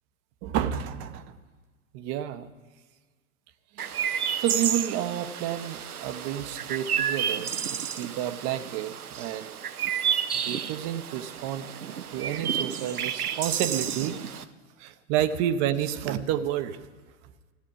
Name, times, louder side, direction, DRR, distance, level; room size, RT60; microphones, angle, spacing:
voice 1, 0.4-1.4 1.9-2.5 3.7-3.9 4.4-9.7 10.3-11.7 12.1-14.5 14.8-16.9, right 10 dB, 35° right, 12 dB, 0.8 m, -30 dB
Chirp tweet, 3.8-14.4, right 8 dB, 80° right, 0.8 m, -31 dB
14.5 x 9.4 x 9.2 m, 1.4 s
figure-of-eight pair, 95°, 44 cm